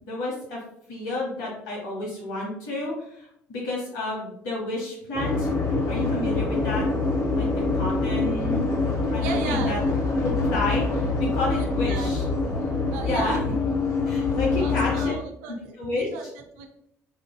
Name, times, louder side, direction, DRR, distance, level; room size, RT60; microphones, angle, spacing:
voice 1, 0.0-0.6 0.9-5.5 5.8-6.9 7.3-8.7 9.1-9.8 10.2-12.2 13.0-13.4 14.1-15.1 15.8-16.1, left 2 dB, 70° left, -4 dB, 0.9 m, -30 dB
sound 1, 5.1-15.1, left 3 dB, 45° left, 1.0 m, -25 dB
voice 2, 9.2-9.8 11.5-12.3 12.9-13.4 14.0-14.1 14.6-16.7, right 5 dB, 70° right, 4 dB, 0.4 m, -36 dB
4.3 x 2.6 x 2.2 m, 0.74 s
figure-of-eight pair, 50°, 8 cm